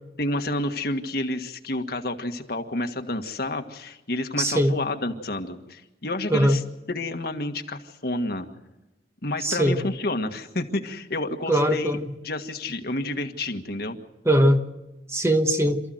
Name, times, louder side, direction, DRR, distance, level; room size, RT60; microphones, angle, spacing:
voice 1, 0.2-6.6 6.9-8.5 9.2-12.0 12.2-14.0, left 2 dB, 60° left, 5 dB, 1.7 m, -29 dB
voice 2, 4.4-4.7 6.3-6.6 9.4-9.8 11.5-12.1 14.2-14.6 15.1-15.8, equal, 15° right, 6 dB, 1.2 m, -20 dB
27.5 x 14.5 x 7.9 m, 1.0 s
head